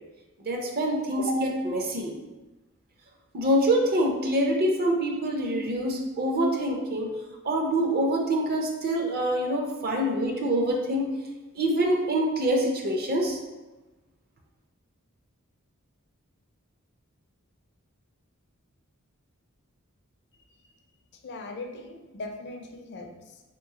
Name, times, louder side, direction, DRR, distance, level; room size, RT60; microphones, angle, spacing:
voice 1, 0.4-2.1 3.3-7.1 7.4-11.2 11.5-13.4, right 1 dB, 45° right, 1 dB, 0.6 m, -25 dB
voice 2, 21.2-23.4, left 2 dB, 55° left, 3 dB, 0.5 m, -40 dB
3.4 x 3.0 x 3.6 m, 1.1 s
head